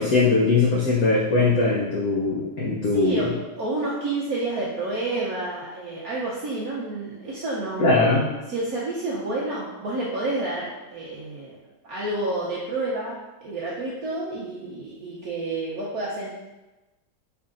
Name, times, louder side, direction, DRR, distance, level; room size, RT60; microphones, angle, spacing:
voice 1, 0.0-3.2 7.8-8.2, left 3 dB, 80° left, -4 dB, 0.8 m, -21 dB
voice 2, 2.9-3.3 3.6-11.6 11.8-16.3, right 2 dB, 75° right, -6 dB, 0.8 m, -29 dB
4.6 x 3.5 x 2.4 m, 1.1 s
omnidirectional pair, 2.2 m